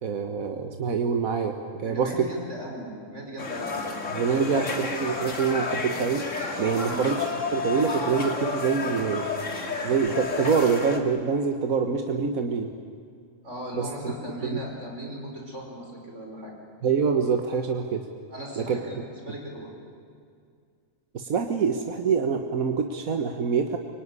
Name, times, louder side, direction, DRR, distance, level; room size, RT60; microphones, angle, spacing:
voice 1, 0.0-2.3 4.1-6.2 6.6-9.3 9.8-12.7 13.8-14.1 14.5-14.6 16.8-18.0 18.6-18.8 21.1-23.8, right 5 dB, 85° right, 5 dB, 1.8 m, -25 dB
voice 2, 1.8-4.6 6.8-7.0 13.4-16.5 18.3-19.7, equal, 60° right, 0 dB, 5.6 m, -38 dB
sound 1, 3.4-11.0, left 3 dB, 65° left, 2.5 m, -31 dB
25.0 x 24.0 x 9.8 m, 2.2 s
omnidirectional pair, 1.4 m